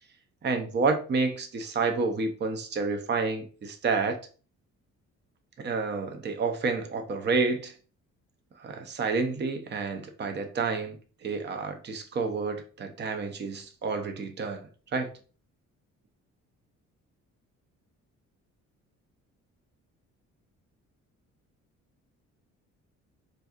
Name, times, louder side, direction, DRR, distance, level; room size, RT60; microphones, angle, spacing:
voice 1, 0.4-4.2 5.6-7.7 8.6-15.1, right 4 dB, 35° right, 6 dB, 0.6 m, -29 dB
4.1 x 2.5 x 2.4 m, 0.38 s
cardioid pair, 90°, 30 cm